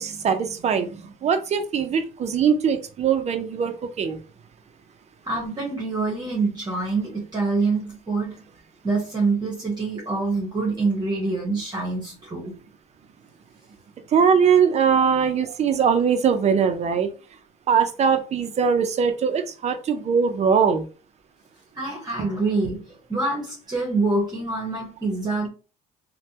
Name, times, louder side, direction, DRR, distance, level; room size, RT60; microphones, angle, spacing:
voice 1, 0.0-4.2 14.1-17.1 17.7-20.8, right 6 dB, 40° right, 8 dB, 0.6 m, -21 dB
voice 2, 5.2-8.4 8.8-12.5 21.7-25.5, right 3 dB, 25° right, -4 dB, 1.2 m, -26 dB
3.2 x 2.2 x 2.8 m, 0.34 s
cardioid pair, 110°, 17 cm